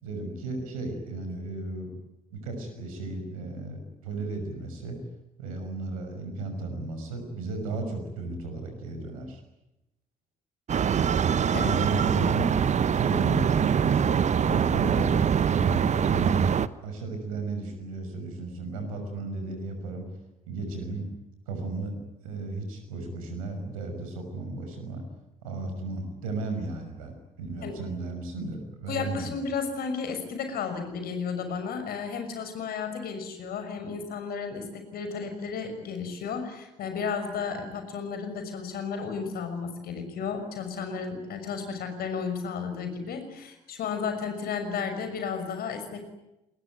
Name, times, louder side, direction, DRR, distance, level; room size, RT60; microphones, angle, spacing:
voice 1, 0.0-1.9 2.3-5.0 5.4-9.4 11.6-15.2 15.6-16.6 16.8-20.1 20.5-21.1 21.5-22.0 22.2-25.0 25.4-29.3, right 3 dB, 80° right, 6 dB, 6.0 m, -34 dB
sound 1, 10.7-16.7, right 7 dB, 40° right, 1.2 m, -23 dB
voice 2, 28.9-46.0, left 5 dB, 60° left, 7 dB, 6.2 m, -33 dB
28.0 x 21.0 x 9.2 m, 0.93 s
figure-of-eight pair, 50°, 18 cm